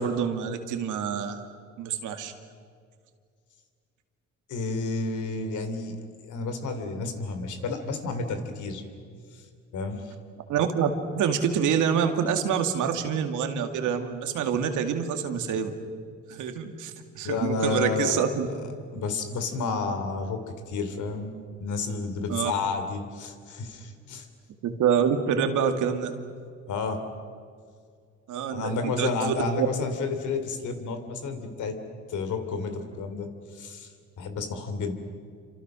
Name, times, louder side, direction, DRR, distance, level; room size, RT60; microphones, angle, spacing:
voice 1, 0.0-1.4 1.8-2.3 10.5-15.7 16.3-18.5 22.3-22.5 24.6-26.1 28.3-29.7, right 7 dB, 85° right, 6 dB, 2.4 m, -26 dB
voice 2, 4.5-6.0 6.2-8.8 9.3-9.4 9.7-10.1 17.2-18.3 18.9-21.3 21.6-24.3 26.7-27.1 28.5-31.8 32.1-33.9 34.2-34.9, left 4 dB, 75° left, 7 dB, 3.4 m, -31 dB
28.0 x 26.5 x 6.4 m, 2.2 s
cardioid pair, 90°, 30 cm